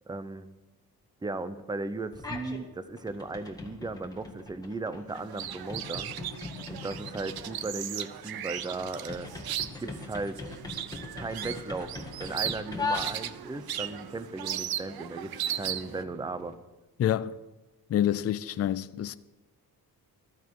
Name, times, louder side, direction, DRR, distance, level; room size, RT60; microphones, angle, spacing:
voice 1, 0.1-0.5 1.2-6.1 6.7-9.3 9.8-10.4 11.2-16.6, right 3 dB, 10° right, 0.6 m, -36 dB
sound 1, 2.1-2.6 3.0-13.6, left 3 dB, 10° left, 1.6 m, -40 dB
sound 2, 5.1-16.0, right 11 dB, 70° right, 0.7 m, -37 dB
sound 3, 11.9-16.5, right 5 dB, 50° right, 1.3 m, -51 dB
voice 2, 17.0-17.4 17.9-19.1, left 11 dB, 40° left, 0.4 m, -28 dB
14.5 x 13.5 x 4.7 m
wide cardioid pair, 175°, 38 cm